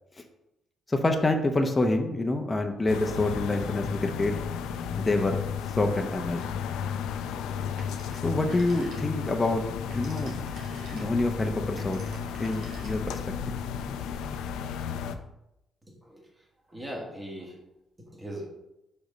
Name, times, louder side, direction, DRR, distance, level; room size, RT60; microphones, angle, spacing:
voice 1, 0.9-4.3 5.0-5.4 5.8-6.4 8.2-9.6 9.9-10.3 10.9-12.0 12.4-13.2, left 2 dB, 20° left, 4 dB, 0.8 m, -27 dB
sound 1, 2.9-15.2, left 7 dB, 90° left, 0.5 m, -33 dB
Telephone, 7.8-9.3 9.7-13.3, right 2 dB, 75° right, 2.1 m, -49 dB
voice 2, 15.9-17.6 18.1-18.5, equal, 20° right, -2 dB, 2.0 m, -40 dB
5.4 x 5.1 x 5.1 m, 0.88 s
cardioid pair, 90°, 0 cm